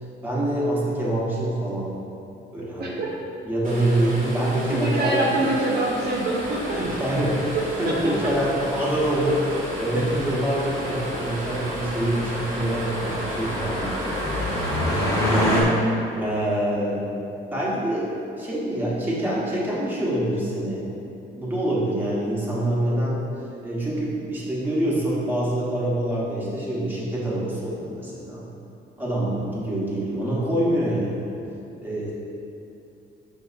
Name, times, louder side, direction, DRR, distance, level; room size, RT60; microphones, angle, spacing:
voice 1, 0.2-2.0 2.5-3.0 3.4-5.3 6.7-14.7 15.3-15.8 16.1-17.1 17.5-18.1 18.4-20.8 21.3-23.2 23.6-28.4 29.0-31.3 31.8-32.1, right 1 dB, 10° right, -7 dB, 1.1 m, -25 dB
sound 1, 3.6-15.6, equal, 40° right, 1.1 m, -33 dB
voice 2, 4.7-6.8 7.5-8.3 9.9-10.2, right 2 dB, 55° right, -5 dB, 0.6 m, -25 dB
sound 2, 6.3-15.6, left 1 dB, 15° left, 1.2 m, -30 dB
6.1 x 2.7 x 2.5 m, 2.8 s
cardioid pair, 90°, 20 cm